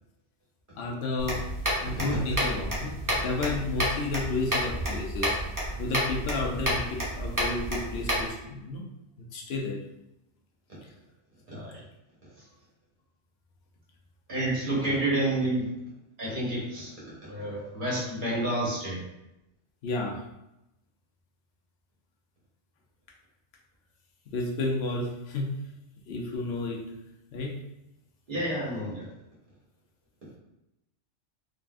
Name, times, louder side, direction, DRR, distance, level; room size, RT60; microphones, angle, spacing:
voice 1, 0.8-1.5 1.8-5.4 5.8-8.8 9.3-9.8 19.8-20.2 24.3-25.5 26.1-26.8 27.3-27.5, left 3 dB, 60° left, 0 dB, 0.9 m, -31 dB
sound 1, 1.2-8.3, equal, 20° right, 0.7 m, -30 dB
voice 2, 11.5-11.8 14.3-15.7 16.2-16.9 17.2-19.0 28.3-29.0, right 1 dB, 40° right, -7 dB, 1.6 m, -29 dB
3.8 x 3.1 x 2.5 m, 0.89 s
omnidirectional pair, 1.3 m